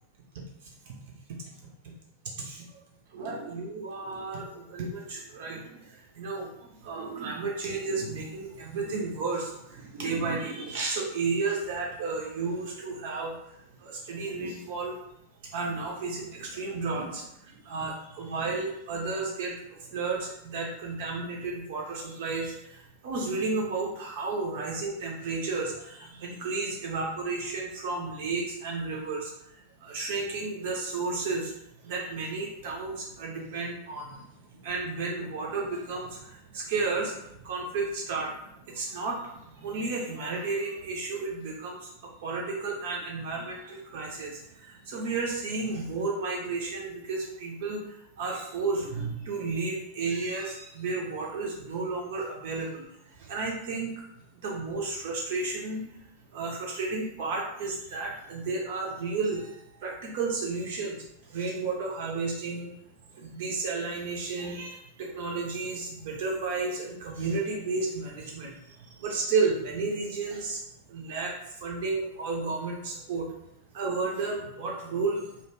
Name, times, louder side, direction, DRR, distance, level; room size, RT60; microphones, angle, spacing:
voice 1, 2.4-2.8 3.1-6.5 6.8-15.0 15.4-31.5 31.8-53.9 54.4-55.9 56.3-62.7 63.1-70.6 70.9-73.3 73.7-75.5, right 3 dB, 50° right, -2 dB, 0.5 m, -33 dB
2.3 x 2.1 x 3.1 m, 0.79 s
figure-of-eight pair, 90°, 0 cm